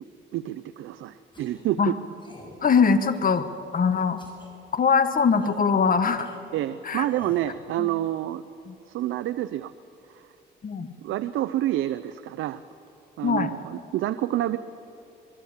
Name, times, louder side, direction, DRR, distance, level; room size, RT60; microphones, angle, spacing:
voice 1, 0.3-1.9 6.5-8.4 8.9-9.7 11.0-12.6 13.2-14.6, right 13 dB, 80° right, 12 dB, 0.7 m, -28 dB
sound 1, 1.3-1.7 2.2-2.6 3.1-3.6 4.2-4.5 5.2-5.6 6.2-6.4 7.0-7.5, left 2 dB, 25° left, 6.4 m, -47 dB
voice 2, 2.6-3.5 3.7-4.2 4.7-6.3 6.8-7.1 7.8-7.9 8.7-8.8 10.6-10.9 13.2-13.5, left 5 dB, 45° left, 10 dB, 1.6 m, -22 dB
25.0 x 22.5 x 7.4 m, 2.6 s
cardioid pair, 90°, 20 cm